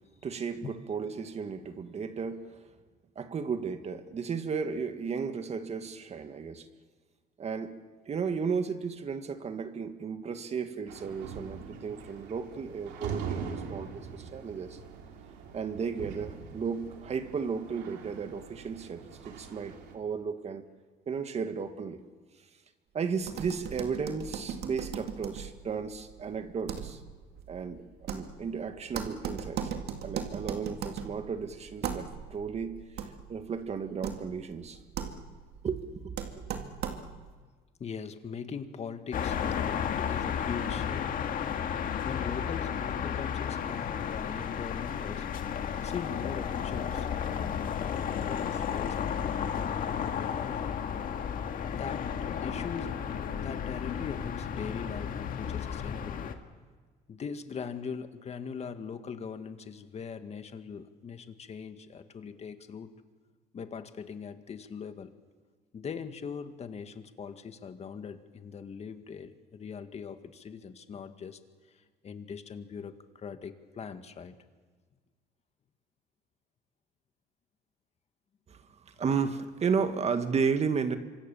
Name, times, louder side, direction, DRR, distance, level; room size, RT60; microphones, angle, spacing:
voice 1, 0.2-2.6 3.2-6.7 7.4-7.8 8.1-14.8 15.5-20.6 21.1-22.0 22.9-27.0 27.5-29.7 30.0-34.8 35.6-36.4 78.5-81.0, right 5 dB, 40° right, 1.8 m, -34 dB
sound 1, 10.9-19.9, right 6 dB, 90° right, 2.9 m, -42 dB
sound 2, 23.2-37.3, right 8 dB, 70° right, 2.2 m, -39 dB
voice 2, 37.8-41.1 42.1-45.3 45.8-50.7 51.7-52.1 52.4-53.0 53.3-56.3 57.1-62.9 63.5-65.1 65.7-71.4 71.7-74.4, left 6 dB, 40° left, 1.9 m, -41 dB
sound 3, 39.1-56.3, left 8 dB, 55° left, 1.9 m, -33 dB
26.5 x 25.0 x 7.1 m
cardioid pair, 110°, 17 cm